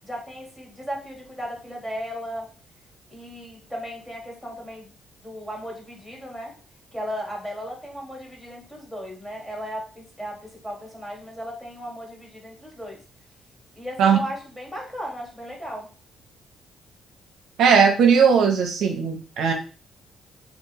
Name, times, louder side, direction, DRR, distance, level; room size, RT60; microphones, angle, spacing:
voice 1, 0.0-2.5 3.1-4.9 5.2-6.5 6.9-13.0 13.8-15.9, equal, 10° left, -1 dB, 1.6 m, -35 dB
voice 2, 17.6-19.5, right 6 dB, 75° right, 2 dB, 0.6 m, -18 dB
3.4 x 2.4 x 3.2 m, 0.36 s
cardioid pair, 90°, 0 cm